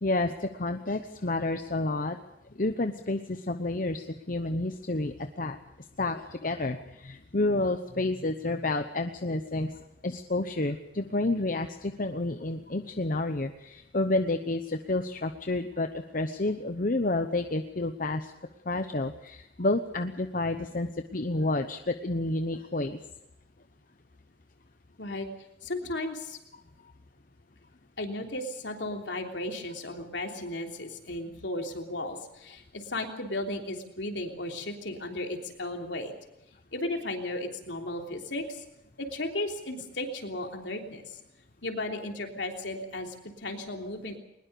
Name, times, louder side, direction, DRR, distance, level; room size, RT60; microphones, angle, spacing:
voice 1, 0.0-2.2 2.6-5.6 6.0-18.3 18.7-23.0, left 2 dB, 45° left, 7 dB, 0.9 m, -30 dB
voice 2, 25.6-26.4 28.0-36.1 36.7-38.6 39.0-41.2 41.6-44.2, left 1 dB, 70° left, 3 dB, 3.3 m, -35 dB
21.5 x 20.5 x 6.9 m, 0.86 s
head